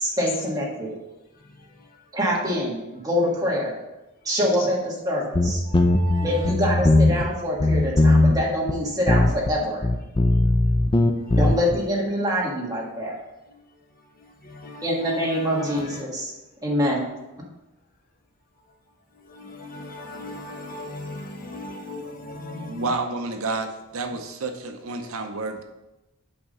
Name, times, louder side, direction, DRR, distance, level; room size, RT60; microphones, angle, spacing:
voice 1, 0.0-0.9 2.1-2.8 3.0-3.7 4.3-5.6 6.2-9.9 11.3-13.2 14.8-16.3 16.6-17.1, equal, 15° right, -3 dB, 1.6 m, -25 dB
voice 2, 1.4-2.0 5.7-6.5 11.2-11.4 14.2-16.0 19.2-22.9, left 1 dB, 40° left, 2 dB, 1.0 m, -39 dB
sound 1, 5.3-7.3 7.6-8.4 8.7-8.8 9.1-9.5 9.8-11.8, left 2 dB, 20° left, 0.5 m, -18 dB
voice 3, 22.7-25.6, right 3 dB, 65° right, 5 dB, 0.7 m, -30 dB
8.6 x 3.6 x 5.4 m, 1.0 s
head